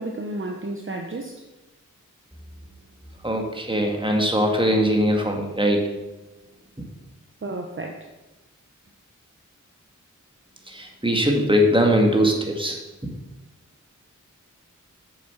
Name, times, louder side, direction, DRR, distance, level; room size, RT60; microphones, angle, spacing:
voice 1, 0.0-1.5 7.4-8.1, right 2 dB, 40° right, 0.9 m, -32 dB
voice 2, 3.2-5.9 6.8-6.9 10.7-12.8 13.0-13.1, equal, 15° right, 2.1 m, -21 dB
8.5 x 7.2 x 5.7 m
cardioid pair, 45°, 32 cm